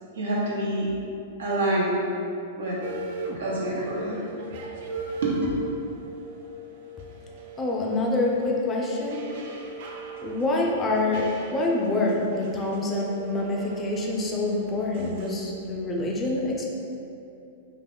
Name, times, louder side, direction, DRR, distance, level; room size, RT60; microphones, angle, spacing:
voice 1, 0.1-0.9 1.4-2.0 2.6-2.8 3.4-4.3 5.2-5.3, right 1 dB, 85° right, -5 dB, 0.8 m, -27 dB
sound 1, 2.8-3.4 3.7-15.4, right 3 dB, 60° right, 0.3 m, -39 dB
voice 2, 7.6-9.2 10.2-16.6, left 2 dB, 20° left, -2 dB, 0.4 m, -26 dB
2.4 x 2.2 x 3.7 m, 2.7 s
hypercardioid pair, 130°, 0 cm